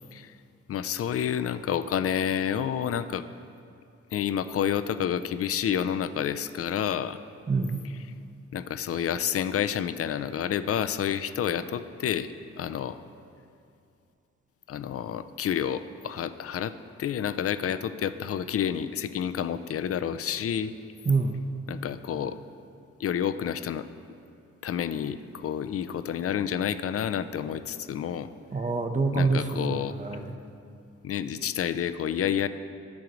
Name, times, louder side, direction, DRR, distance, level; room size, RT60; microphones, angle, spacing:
voice 1, 0.7-3.3 4.1-7.2 8.5-13.0 14.7-20.7 21.7-22.4 23.0-23.9 24.6-28.3 29.1-30.0 31.0-32.5, left 9 dB, 50° left, 12 dB, 0.4 m, -29 dB
voice 2, 7.5-7.8 21.1-21.4 28.5-29.5 29.8-30.3, right 4 dB, 25° right, 4 dB, 0.7 m, -26 dB
10.5 x 3.8 x 6.1 m, 2.5 s
supercardioid pair, 50°, 29 cm